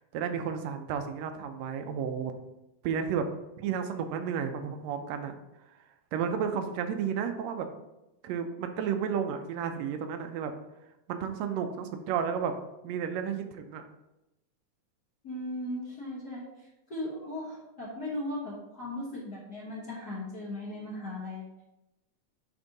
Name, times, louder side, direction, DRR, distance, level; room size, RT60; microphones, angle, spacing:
voice 1, 0.1-2.3 2.8-3.3 3.6-5.3 6.1-7.7 8.2-10.5 11.1-12.5 12.8-13.8, right 7 dB, 75° right, 7 dB, 1.7 m, -32 dB
voice 2, 15.2-21.6, left 1 dB, 45° left, -7 dB, 1.4 m, -38 dB
8.8 x 3.6 x 4.0 m, 0.94 s
omnidirectional pair, 3.3 m